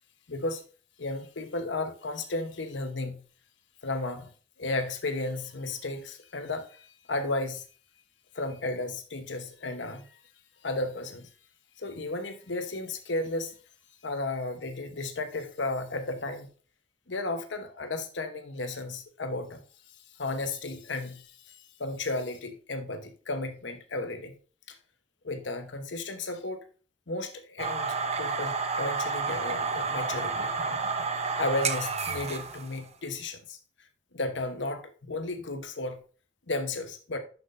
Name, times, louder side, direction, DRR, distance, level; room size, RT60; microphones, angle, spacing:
voice 1, 0.3-0.6 1.0-3.2 3.8-4.3 4.6-7.6 8.3-10.2 10.6-11.3 11.8-13.5 14.0-16.5 17.1-19.6 20.2-24.3 24.7-24.8 25.2-26.6 27.1-30.8 31.4-33.6 34.1-36.0 36.5-37.2, left 2 dB, 80° left, 1.0 m, -34 dB
sound 1, 27.6-32.8, right 4 dB, 35° right, 0.8 m, -30 dB
11.0 x 6.0 x 2.6 m
head